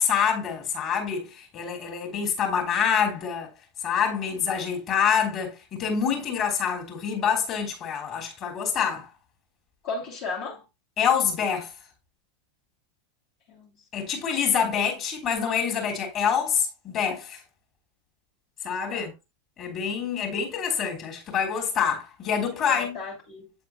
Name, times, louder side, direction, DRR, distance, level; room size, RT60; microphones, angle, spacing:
voice 1, 0.0-3.5 3.8-9.1 11.0-11.7 13.9-17.4 18.6-19.1 19.6-23.0, left 7 dB, 35° left, 3.1 m, -26 dB
voice 2, 9.8-10.6 13.5-13.8 18.9-19.1 22.5-23.5, left 4 dB, 50° left, 2.6 m, -35 dB
8.5 x 7.7 x 2.2 m
figure-of-eight pair, 90°, 0 cm